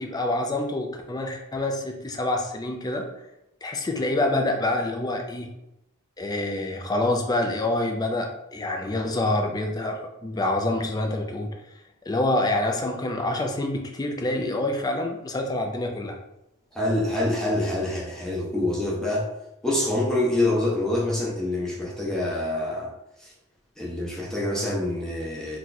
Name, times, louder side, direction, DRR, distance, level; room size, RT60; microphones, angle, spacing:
voice 1, 0.0-3.0 3.6-5.5 6.2-11.5 12.1-16.2, left 2 dB, 20° left, 3 dB, 0.4 m, -26 dB
voice 2, 16.7-19.3 19.6-22.9 23.2-23.3 23.8-25.6, left 1 dB, ahead, -6 dB, 0.8 m, -26 dB
2.9 x 2.3 x 3.9 m, 0.86 s
head